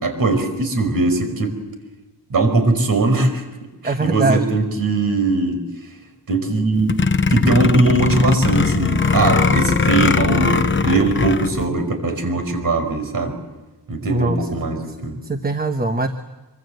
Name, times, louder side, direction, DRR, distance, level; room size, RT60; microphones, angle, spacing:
voice 1, 0.0-1.5 2.3-3.4 3.8-5.6 6.3-6.9 7.3-13.4 13.9-15.2, right 2 dB, 55° right, 6 dB, 5.4 m, -20 dB
voice 2, 3.8-4.4 14.1-14.5 14.9-15.0 15.2-16.1, right 2 dB, 20° right, 6 dB, 1.2 m, -21 dB
sound 1, 6.8-11.7, left 5 dB, 30° left, 0.9 m, -19 dB
26.0 x 25.0 x 8.0 m, 1.1 s
wide cardioid pair, 170°, 40 cm